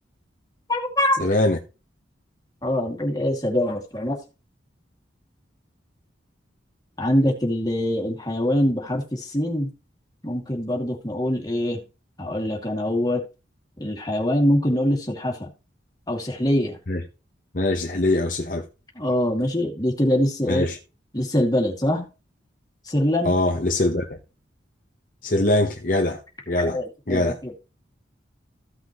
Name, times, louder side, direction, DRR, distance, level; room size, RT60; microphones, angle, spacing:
voice 1, 0.7-1.2 2.6-4.2 7.0-9.7 10.2-11.8 12.2-13.2 13.8-15.5 16.1-16.8 19.0-20.6 21.1-22.1 22.9-23.4 26.6-27.5, left 1 dB, 20° left, 2.2 m, -23 dB
voice 2, 1.2-1.6 16.9-17.0 17.5-18.7 20.5-20.8 23.2-24.2 25.2-26.2 26.5-26.8 27.1-27.4, left 1 dB, 45° left, 0.9 m, -22 dB
15.0 x 6.0 x 3.0 m
head